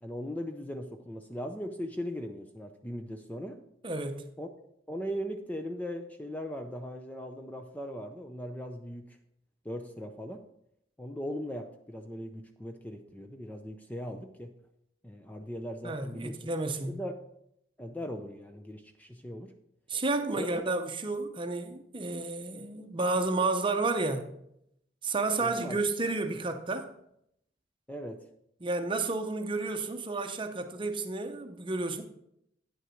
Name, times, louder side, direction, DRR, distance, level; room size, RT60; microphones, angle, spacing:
voice 1, 0.0-3.6 4.4-4.5 4.9-9.2 9.6-10.4 11.0-14.5 15.0-16.5 16.9-17.2 17.8-19.5 20.3-20.6 25.4-25.8 27.9-28.2, equal, 10° left, 0.5 m, -39 dB
voice 2, 3.8-4.3 15.8-17.0 19.9-24.3 25.0-26.9 28.6-32.0, right 3 dB, 25° right, 0.7 m, -31 dB
9.4 x 6.5 x 4.5 m
head